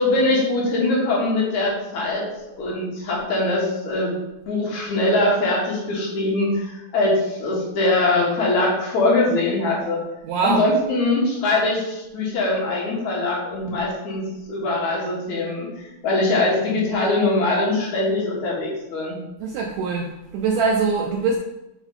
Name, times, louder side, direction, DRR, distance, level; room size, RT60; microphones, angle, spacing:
voice 1, 0.0-2.3 2.6-4.2 4.5-10.0 10.4-15.7 16.0-19.2, left 2 dB, 65° left, -4 dB, 2.7 m, -22 dB
voice 2, 10.2-10.6 19.4-20.1 20.3-21.4, right 4 dB, 90° right, 1 dB, 1.5 m, -22 dB
6.1 x 4.8 x 3.9 m, 0.95 s
omnidirectional pair, 3.8 m